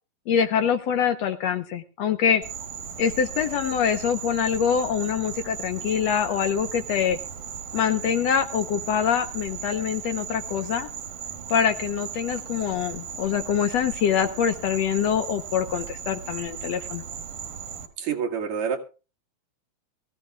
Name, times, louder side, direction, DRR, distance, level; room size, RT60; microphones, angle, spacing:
voice 1, 0.3-2.4 3.0-7.2 7.7-10.9 11.5-17.0, left 8 dB, 65° left, 8 dB, 1.9 m, -24 dB
Insect, 2.4-17.9, right 7 dB, 85° right, 3.2 m, -37 dB
voice 2, 18.0-18.8, right 6 dB, 65° right, 2 dB, 3.1 m, -27 dB
22.5 x 15.5 x 2.4 m, 0.33 s
omnidirectional pair, 3.6 m